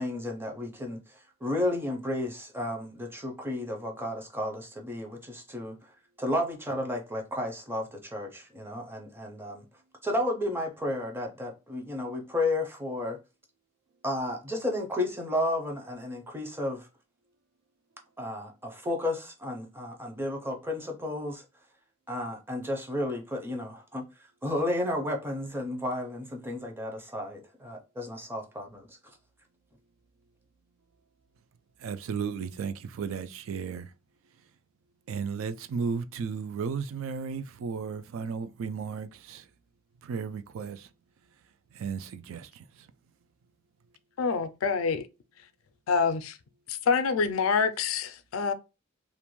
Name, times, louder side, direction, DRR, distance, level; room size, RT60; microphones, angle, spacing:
voice 1, 0.0-5.8 6.2-9.6 10.0-13.2 14.0-16.9 18.2-21.4 22.1-24.0 24.4-29.0, left 1 dB, 10° right, 0.6 m, -32 dB
voice 2, 31.8-33.9 35.1-39.5 40.0-40.9 41.7-42.9, right 6 dB, 70° right, 0.3 m, -34 dB
voice 3, 44.2-45.1 45.9-46.4 46.7-48.5, left 5 dB, 80° left, 0.4 m, -26 dB
2.5 x 2.1 x 3.0 m
head